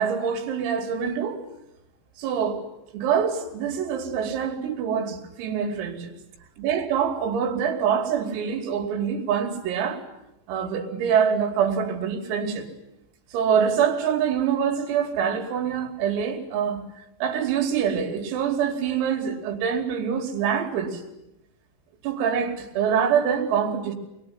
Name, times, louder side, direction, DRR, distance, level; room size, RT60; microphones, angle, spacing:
voice 1, 0.0-1.4 2.2-2.6 2.9-6.1 6.6-10.0 10.5-12.7 13.3-16.8 17.2-21.0 22.0-24.0, right 7 dB, 90° right, 5.5 m, -25 dB
27.0 x 22.0 x 9.7 m
omnidirectional pair, 5.9 m